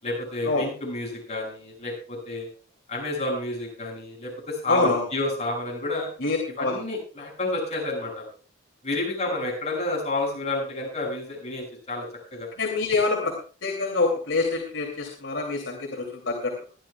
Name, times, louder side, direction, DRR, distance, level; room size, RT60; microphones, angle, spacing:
voice 1, 0.0-2.5 2.9-6.1 6.6-8.2 8.8-12.1 12.3-12.5, left 2 dB, 35° left, -1 dB, 6.7 m, -30 dB
voice 2, 4.7-5.0 6.2-6.8 12.6-13.3 13.6-16.5, left 3 dB, 65° left, -1 dB, 2.9 m, -25 dB
23.5 x 11.0 x 2.4 m, 0.37 s
head